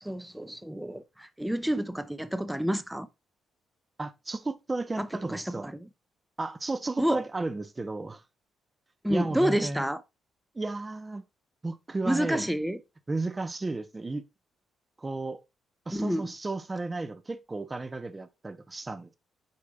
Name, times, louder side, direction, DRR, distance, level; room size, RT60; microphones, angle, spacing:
voice 1, 0.0-3.1 5.0-5.9 7.0-7.2 9.0-10.0 12.1-12.8 15.9-16.3, equal, 5° right, 0.8 m, -29 dB
voice 2, 4.0-5.7 6.4-8.2 9.1-9.8 10.5-11.2 11.6-12.5 13.1-14.2 15.0-15.4 15.9-19.2, right 3 dB, 25° right, 1.0 m, -33 dB
8.3 x 4.8 x 2.4 m
supercardioid pair, 55°, 0 cm